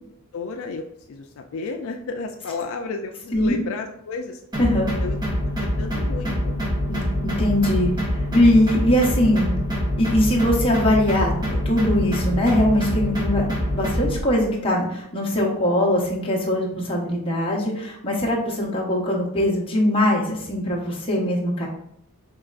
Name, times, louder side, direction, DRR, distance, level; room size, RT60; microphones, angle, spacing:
voice 1, 0.3-4.4 5.0-5.2 5.8-6.6, left 4 dB, 65° left, 3 dB, 0.3 m, -32 dB
sound 1, 4.5-14.2, equal, 20° right, 0.9 m, -25 dB
voice 2, 4.6-4.9 6.9-9.5 10.0-21.7, left 1 dB, 25° left, -3 dB, 0.8 m, -21 dB
4.7 x 3.1 x 2.4 m, 0.75 s
head